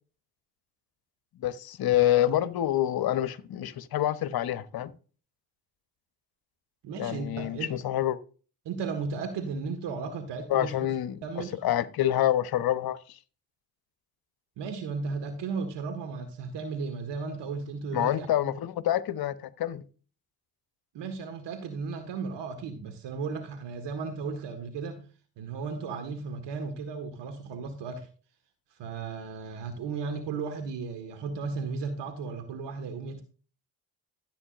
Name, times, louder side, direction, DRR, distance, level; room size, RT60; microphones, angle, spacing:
voice 1, 1.4-4.9 7.0-8.2 10.5-11.2 11.6-13.0 17.9-19.8, left 12 dB, 50° left, 1.0 m, -27 dB
voice 2, 6.8-7.7 8.6-10.8 11.2-11.6 14.6-18.3 20.9-25.1 25.4-28.1 28.8-33.2, right 4 dB, 55° right, 1.7 m, -35 dB
14.0 x 8.4 x 2.5 m
hypercardioid pair, 50°, 49 cm